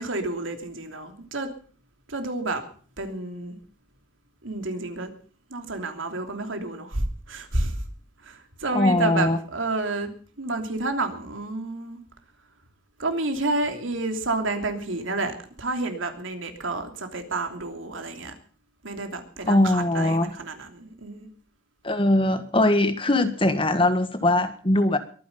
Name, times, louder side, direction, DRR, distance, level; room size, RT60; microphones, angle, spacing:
voice 1, 0.0-1.5 2.1-2.6 3.0-3.6 4.4-5.1 5.5-7.8 8.2-10.1 10.4-12.0 13.0-18.3 18.8-21.3, right 2 dB, 90° right, 6 dB, 3.1 m, -30 dB
voice 2, 8.7-9.4 19.5-20.3 21.8-25.0, left 1 dB, 25° left, 10 dB, 1.6 m, -21 dB
22.5 x 10.0 x 5.5 m, 0.43 s
head